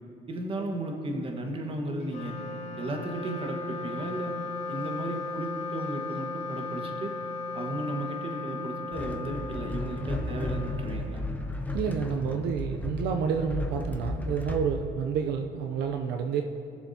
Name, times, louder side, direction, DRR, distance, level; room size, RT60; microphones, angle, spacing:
voice 1, 0.3-2.4 2.8-4.3 4.7-7.2 7.5-11.2, right 1 dB, 30° right, 2 dB, 1.4 m, -34 dB
Wind instrument woodwind instrument, 2.0-11.6, left 3 dB, 40° left, 2.2 m, -37 dB
sound 1, 8.9-14.7, left 2 dB, 10° left, 0.8 m, -34 dB
voice 2, 11.7-16.4, right 7 dB, 80° right, 4 dB, 0.6 m, -29 dB
19.5 x 7.0 x 2.8 m, 2.7 s
cardioid pair, 110°, 17 cm